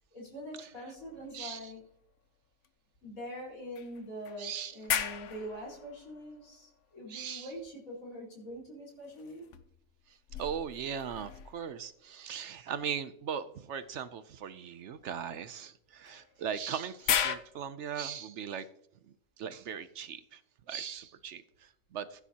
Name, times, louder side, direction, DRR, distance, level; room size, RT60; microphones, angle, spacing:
voice 1, 0.1-1.8 3.0-9.5, equal, 80° left, -4 dB, 4.7 m, -44 dB
sound 1, 1.0-2.3 2.6-2.7 3.8-7.2 9.0-12.1 13.8-14.0 16.1-17.4, left 8 dB, 65° left, 1.0 m, -37 dB
voice 2, 1.3-1.7 4.4-4.8 7.1-7.5 10.4-18.7 19.4-20.4 20.7-22.2, right 8 dB, 65° right, 13 dB, 0.8 m, -39 dB
15.5 x 9.3 x 2.8 m, 0.71 s
omnidirectional pair, 1.5 m